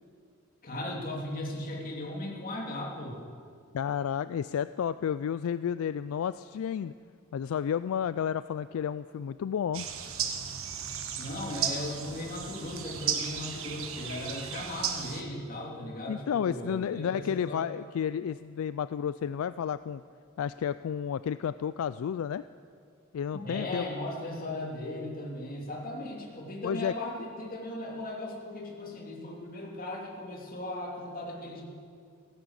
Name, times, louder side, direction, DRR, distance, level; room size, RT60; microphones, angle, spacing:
voice 1, 0.6-3.2 11.2-17.7 23.3-31.6, left 1 dB, 40° left, -1 dB, 2.9 m, -37 dB
voice 2, 3.7-6.9 7.3-9.9 16.1-20.0 20.4-22.4 23.1-23.9 26.6-26.9, left 8 dB, 70° left, 14 dB, 0.3 m, -31 dB
sound 1, 9.7-15.2, right 8 dB, 70° right, 1.3 m, -35 dB
16.0 x 11.0 x 8.1 m, 2.2 s
head